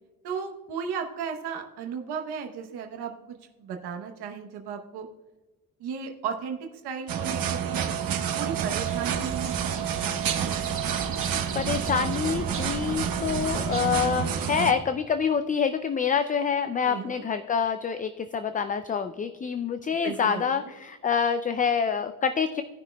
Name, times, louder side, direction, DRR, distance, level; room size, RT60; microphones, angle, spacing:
voice 1, 0.2-5.1 5.8-7.9 8.3-9.7 16.9-17.2 20.0-20.4, right 6 dB, 90° right, 4 dB, 0.9 m, -35 dB
sound 1, 7.1-14.7, right 8 dB, 60° right, 1.1 m, -29 dB
sound 2, 8.6-14.2, right 5 dB, 35° right, 1.0 m, -39 dB
voice 2, 11.5-22.6, left 6 dB, 25° left, 9 dB, 0.3 m, -26 dB
17.0 x 6.1 x 2.2 m, 1.2 s
cardioid pair, 125°, 38 cm